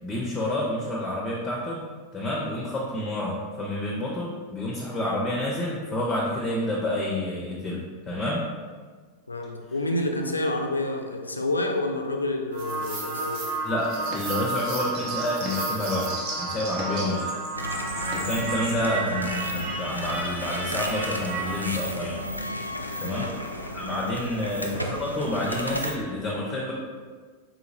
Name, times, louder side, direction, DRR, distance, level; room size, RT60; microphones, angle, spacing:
voice 1, 0.0-1.8 2.1-8.4 13.6-17.3 18.1-22.2 23.0-23.3 23.7-26.7, left 1 dB, 20° left, -4 dB, 0.6 m, -29 dB
voice 2, 9.3-13.5 16.9-17.2 18.7-18.8 23.0-23.3 24.2-24.4, left 1 dB, 80° left, 3 dB, 0.3 m, -29 dB
sound 1, 12.5-21.7, right 2 dB, 45° right, 0.7 m, -31 dB
sound 2, 17.5-25.9, equal, 90° right, 0.3 m, -33 dB
3.9 x 2.8 x 2.6 m, 1.5 s
figure-of-eight pair, 90°, 0 cm